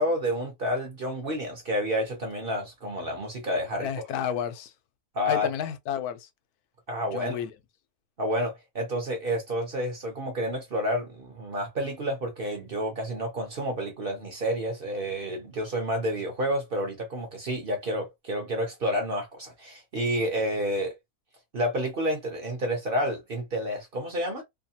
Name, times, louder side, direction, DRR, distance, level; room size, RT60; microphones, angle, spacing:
voice 1, 0.0-3.9 5.1-5.5 6.9-7.4 8.2-21.0 21.5-24.4, equal, 50° right, 0.8 m, -29 dB
voice 2, 3.8-4.7 5.2-6.3 7.1-7.5, left 9 dB, 85° left, 1.1 m, -31 dB
2.7 x 2.2 x 2.7 m
omnidirectional pair, 1.6 m